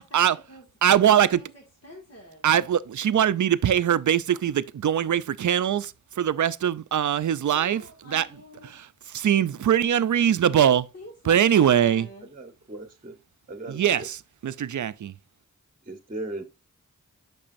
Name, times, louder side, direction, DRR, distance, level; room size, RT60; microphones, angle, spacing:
voice 1, 0.0-2.5 7.2-8.8 10.9-12.3, left 1 dB, 50° left, 2.1 m, -46 dB
voice 2, 0.8-1.4 2.4-8.3 8.6-10.9 11.3-12.1 13.7-15.1, right 9 dB, 65° right, 0.5 m, -22 dB
voice 3, 12.3-13.2 13.5-14.1 15.9-16.4, right 2 dB, 25° right, 1.1 m, -37 dB
8.6 x 6.2 x 2.6 m
wide cardioid pair, 75°, 32 cm